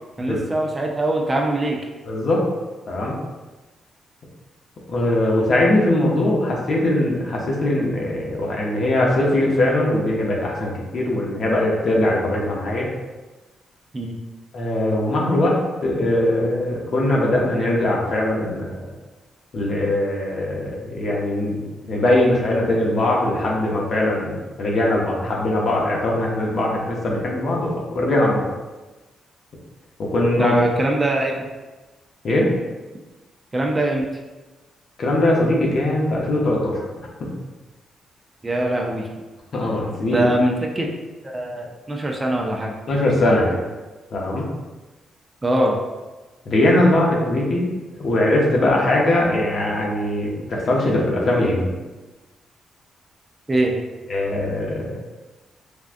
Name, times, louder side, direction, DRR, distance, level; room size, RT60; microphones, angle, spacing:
voice 1, 0.2-1.8 13.9-14.2 30.4-31.4 33.5-34.1 38.4-39.1 40.1-40.9 41.2-42.7 45.4-45.8 53.5-53.7, right 1 dB, 25° right, 0 dB, 0.4 m, -22 dB
voice 2, 2.1-2.4 2.9-3.1 4.9-12.9 14.5-18.8 19.5-28.4 30.0-30.5 32.2-32.5 35.0-36.9 37.2-37.3 39.5-40.3 42.9-43.6 44.1-44.4 46.5-51.7 54.1-55.0, left 1 dB, 55° left, -2 dB, 0.7 m, -21 dB
3.5 x 2.3 x 2.5 m, 1.2 s
cardioid pair, 90°, 0 cm